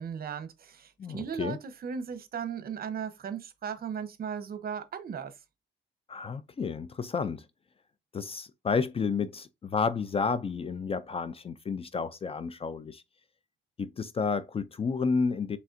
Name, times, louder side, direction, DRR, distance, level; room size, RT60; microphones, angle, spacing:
voice 1, 0.0-1.6 1.8-5.3, right 7 dB, 50° right, 0.8 m, -36 dB
voice 2, 1.0-1.6 6.1-7.5 8.1-13.0 13.8-15.6, left 5 dB, 30° left, 0.4 m, -31 dB
4.8 x 3.4 x 2.5 m
cardioid pair, 90°, 20 cm